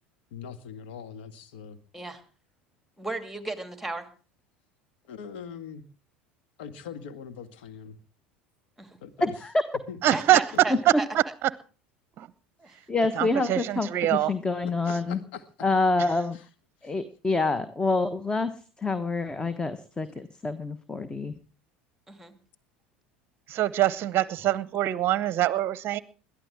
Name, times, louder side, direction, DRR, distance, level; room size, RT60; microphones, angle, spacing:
voice 1, 0.3-1.8 5.1-5.8 6.6-8.0 9.0-9.5 9.9-10.0 12.6-12.9 14.6-15.5 16.3-16.5 16.8-16.9, left 7 dB, 65° left, 9 dB, 1.8 m, -42 dB
voice 2, 3.0-4.1 8.8-9.0 10.1-11.1 12.6-12.8 22.1-22.3, right 2 dB, 5° right, 7 dB, 2.3 m, -35 dB
voice 3, 9.2-9.5 12.9-15.2 15.6-16.4 16.8-18.5 18.8-21.3, left 3 dB, 15° left, 12 dB, 1.2 m, -27 dB
voice 4, 10.0-10.4 10.8-11.5 12.2-12.3 13.1-14.3 23.5-26.0, right 13 dB, 40° right, 18 dB, 0.8 m, -24 dB
22.0 x 13.5 x 3.6 m, 0.38 s
figure-of-eight pair, 75°, 6 cm